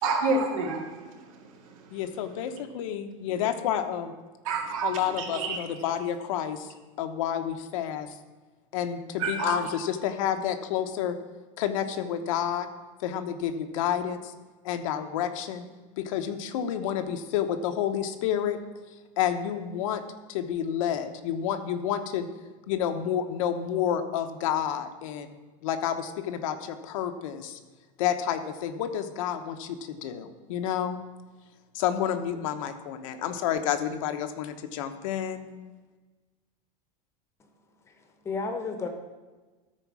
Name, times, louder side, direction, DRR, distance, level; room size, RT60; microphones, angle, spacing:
voice 1, 0.0-2.0 4.4-5.6 9.2-9.6, right 3 dB, 85° right, 1 dB, 2.2 m, -29 dB
voice 2, 1.9-4.1 4.8-8.1 8.7-11.2 11.6-12.7 13.0-14.3 14.6-15.7 16.0-18.6 19.2-20.0 20.3-22.3 22.7-25.3 25.6-27.6 28.0-31.0 31.7-35.5, left 9 dB, 80° left, 7 dB, 1.0 m, -29 dB
voice 3, 37.9-38.9, left 4 dB, 15° left, 6 dB, 0.9 m, -33 dB
13.5 x 4.6 x 6.1 m, 1.3 s
supercardioid pair, 170°, 17 cm